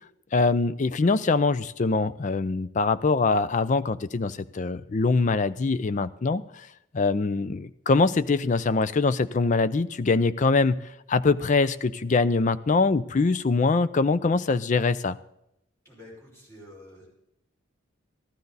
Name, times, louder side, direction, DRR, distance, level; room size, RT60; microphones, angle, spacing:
voice 1, 0.3-6.7 6.9-15.2, left 3 dB, 40° left, 15 dB, 0.4 m, -23 dB
voice 2, 15.8-17.1, left 1 dB, 15° left, -5 dB, 5.4 m, -48 dB
14.5 x 12.5 x 4.1 m, 0.80 s
head